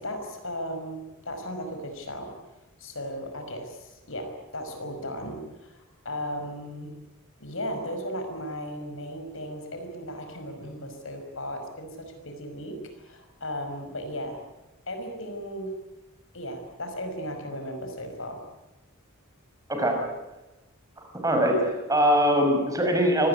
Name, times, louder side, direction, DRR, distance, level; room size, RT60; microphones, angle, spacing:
voice 1, 0.0-2.3 2.8-7.0 7.4-14.4 14.9-15.7 16.3-18.4, equal, 60° left, 5 dB, 5.5 m, -36 dB
voice 2, 21.2-23.3, equal, 15° right, 3 dB, 5.7 m, -22 dB
25.5 x 19.5 x 9.9 m, 1.0 s
head